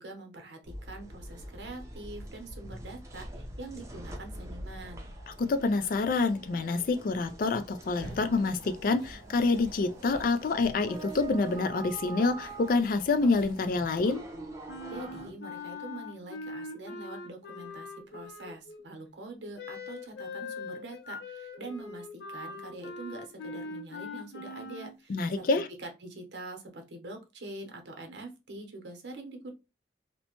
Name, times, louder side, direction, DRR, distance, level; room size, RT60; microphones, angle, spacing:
voice 1, 0.0-5.1 14.9-25.5 25.8-29.5, right 2 dB, 85° right, 0.8 m, -44 dB
sound 1, 0.6-15.3, right 2 dB, 15° right, 0.5 m, -45 dB
voice 2, 5.4-14.2 25.1-25.7, left 3 dB, 50° left, 0.3 m, -27 dB
sound 2, 7.8-13.8, equal, 20° left, 1.5 m, -48 dB
Wind instrument woodwind instrument, 14.7-18.8 19.5-25.0, left 3 dB, 80° left, 0.7 m, -42 dB
2.8 x 2.1 x 2.8 m
head